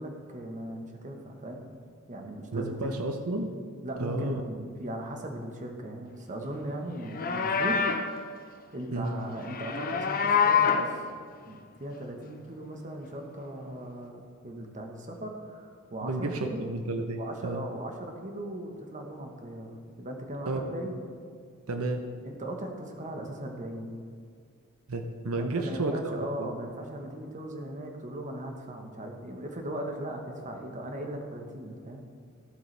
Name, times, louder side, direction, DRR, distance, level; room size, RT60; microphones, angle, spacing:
voice 1, 0.0-1.6 2.1-2.9 3.8-7.8 8.7-11.0 11.4-16.7 17.2-21.0 22.2-24.0 25.4-32.0, right 1 dB, 35° right, 3 dB, 1.2 m, -38 dB
voice 2, 2.5-3.5 4.0-4.4 8.9-9.1 16.0-17.6 20.4-20.9 21.7-22.0 24.9-26.5, right 2 dB, 85° right, 5 dB, 0.8 m, -32 dB
Livestock farm animals working animals, 7.0-8.1 9.4-10.9, left 6 dB, 45° left, 0.7 m, -26 dB
15.5 x 8.2 x 3.3 m, 2.1 s
head